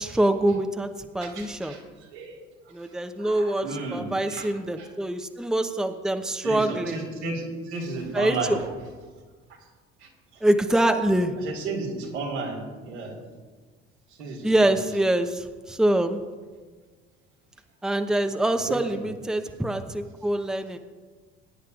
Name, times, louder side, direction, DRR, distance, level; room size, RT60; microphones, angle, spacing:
voice 1, 0.0-1.8 2.7-7.0 8.1-8.6 10.4-11.3 14.4-16.2 17.8-20.8, right 1 dB, ahead, 7 dB, 0.8 m, -25 dB
voice 2, 1.2-1.8 2.1-2.4 2.8-4.9 6.4-8.7 10.0-10.4 11.4-13.2 14.2-14.8 18.5-19.1, right 3 dB, 85° right, -2 dB, 2.6 m, -34 dB
20.5 x 9.8 x 2.5 m, 1.4 s
hypercardioid pair, 60°, 33 cm